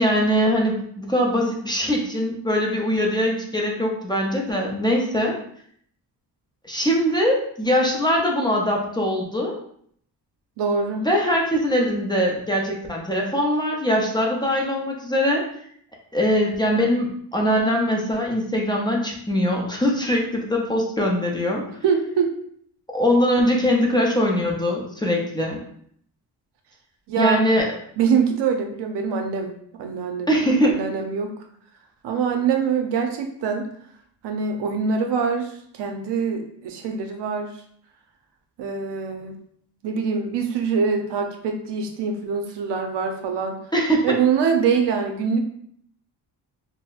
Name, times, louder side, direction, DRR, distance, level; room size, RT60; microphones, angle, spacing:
voice 1, 0.0-5.4 6.6-9.6 11.0-15.4 16.1-21.6 22.9-25.6 27.2-27.7 30.3-30.8 43.7-44.2, equal, 10° left, -2 dB, 0.4 m, -22 dB
voice 2, 10.6-11.1 21.8-22.3 27.1-27.4 28.0-29.5 29.8-31.3 32.0-33.7 34.2-37.5 38.6-39.3 39.8-43.6 44.0-45.4, right 6 dB, 80° right, 4 dB, 0.6 m, -24 dB
3.9 x 2.1 x 2.4 m, 0.65 s
cardioid pair, 115°, 41 cm